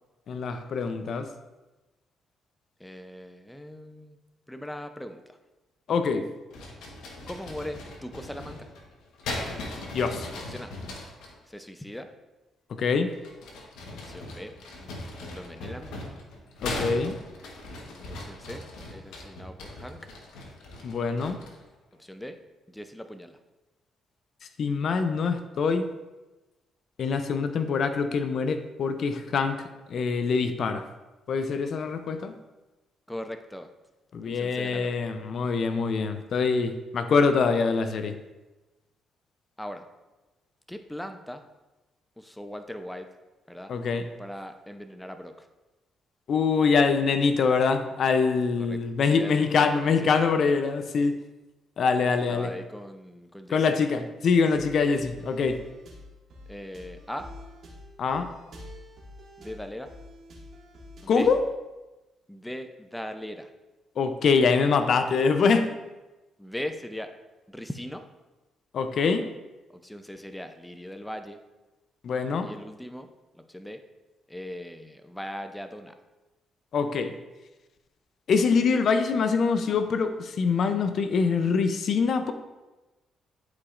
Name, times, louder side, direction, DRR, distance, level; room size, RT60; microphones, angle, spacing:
voice 1, 0.3-1.3 5.9-6.2 9.9-10.3 12.8-13.1 16.6-17.2 20.8-21.4 24.6-25.9 27.0-29.6 29.9-30.8 31.3-32.3 34.1-38.1 43.7-44.0 46.3-51.2 51.8-52.5 53.5-55.6 58.0-58.3 61.1-61.4 64.0-65.7 68.7-69.2 72.0-72.5 76.7-77.1 78.3-82.3, left 5 dB, 60° left, 9 dB, 0.5 m, -24 dB
voice 2, 2.8-4.2 4.5-5.2 7.3-8.7 10.3-10.7 11.5-12.1 14.0-14.6 15.3-15.9 18.2-20.1 22.0-22.4 22.7-23.4 33.1-33.7 34.2-34.9 39.6-39.9 40.7-41.4 42.2-43.1 43.5-43.7 44.2-45.5 48.6-48.8 49.1-50.1 52.3-53.6 56.5-57.3 59.4-59.9 61.0-61.3 62.3-63.5 66.4-67.1 67.5-68.1 69.7-71.4 72.4-73.1 73.4-73.8 74.3-75.9, left 1 dB, 5° left, 7 dB, 0.5 m, -39 dB
sound 1, 6.5-11.4 13.1-21.7, left 2 dB, 85° left, 1.2 m, -39 dB
sound 2, 54.5-61.5, left 1 dB, 60° right, 2.1 m, -47 dB
11.5 x 4.9 x 2.5 m, 1.1 s
cardioid pair, 90°, 0 cm